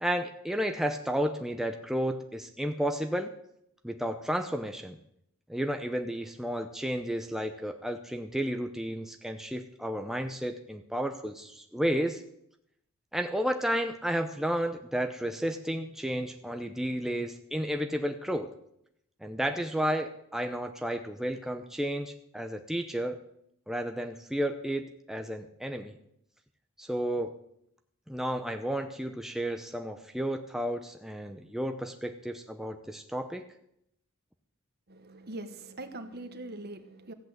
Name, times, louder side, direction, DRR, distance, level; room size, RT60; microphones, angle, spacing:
voice 1, 0.0-3.3 3.8-5.0 5.5-12.2 13.1-18.5 19.2-23.2 23.7-26.0 26.8-27.4 28.1-33.4, equal, ahead, 5 dB, 0.7 m, -32 dB
voice 2, 34.9-37.1, right 2 dB, 50° right, 9 dB, 1.2 m, -42 dB
15.0 x 8.3 x 7.9 m, 0.76 s
head